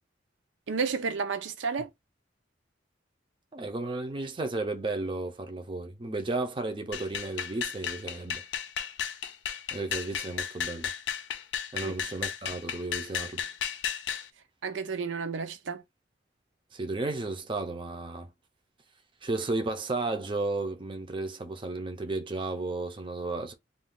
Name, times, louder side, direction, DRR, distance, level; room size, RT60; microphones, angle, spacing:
voice 1, 0.7-1.9 11.8-11.9 14.6-15.8, right 5 dB, 90° right, 0.5 m, -31 dB
voice 2, 3.5-8.4 9.7-10.9 11.7-13.5 16.7-18.3 19.2-23.5, right 2 dB, 25° right, 0.5 m, -33 dB
sound 1, 6.9-14.3, left 8 dB, 70° left, 0.4 m, -34 dB
2.4 x 2.3 x 3.6 m
head